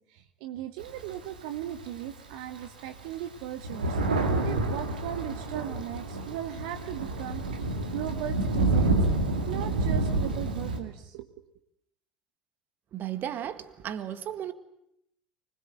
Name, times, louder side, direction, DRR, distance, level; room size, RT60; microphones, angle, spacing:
voice 1, 0.0-9.0 9.5-11.3, right 11 dB, 65° right, 1.3 m, -38 dB
Thunder, 0.8-2.1 2.6-2.7 3.0-10.8, right 2 dB, 85° right, 2.7 m, -28 dB
voice 2, 12.9-14.5, right 10 dB, 45° right, 1.9 m, -35 dB
25.0 x 21.0 x 9.1 m
figure-of-eight pair, 65°, 4 cm